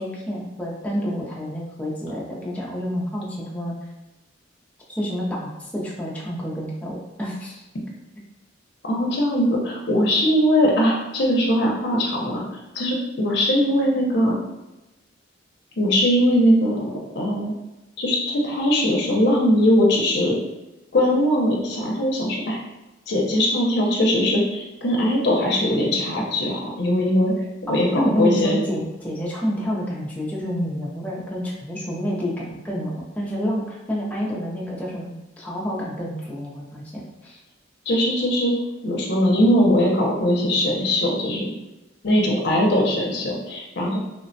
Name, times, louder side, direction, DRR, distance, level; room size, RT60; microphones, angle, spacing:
voice 1, 0.0-3.7 5.0-7.6 27.7-36.8 37.2-37.4, equal, 5° left, -5 dB, 0.5 m, -28 dB
voice 2, 8.8-12.4 12.7-14.4 15.8-17.5 18.0-20.4 20.9-22.6 23.1-27.3 27.7-28.6 37.9-38.6 38.8-41.5 42.0-44.0, equal, 60° left, -2 dB, 0.6 m, -20 dB
3.2 x 2.1 x 2.6 m, 1.0 s
head